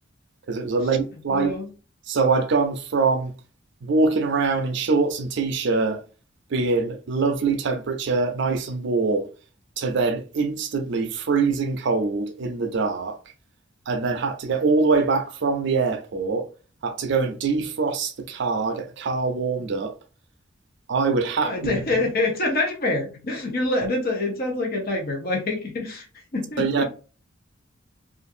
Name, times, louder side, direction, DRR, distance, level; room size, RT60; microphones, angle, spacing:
voice 1, 0.5-1.5 2.1-3.3 3.8-6.0 6.5-9.3 9.8-13.2 13.9-16.5 16.8-19.9 20.9-21.8 26.6-26.8, right 4 dB, 60° right, 0.5 m, -23 dB
voice 2, 1.3-1.7 21.4-26.1 26.3-26.8, left 2 dB, 50° left, 0.7 m, -26 dB
2.5 x 2.5 x 2.5 m
head